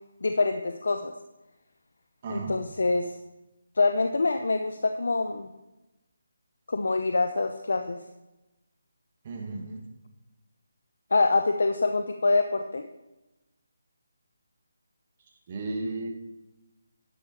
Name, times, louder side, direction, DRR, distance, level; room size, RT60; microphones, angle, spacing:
voice 1, 0.2-1.1 2.3-3.1 3.8-5.5 6.7-8.0 11.1-12.9, left 3 dB, 70° left, 6 dB, 0.7 m, -25 dB
voice 2, 2.2-2.5 9.2-9.8 15.5-16.1, right 2 dB, 35° right, 2 dB, 1.9 m, -34 dB
11.5 x 7.8 x 4.4 m, 0.99 s
figure-of-eight pair, 160°, 0 cm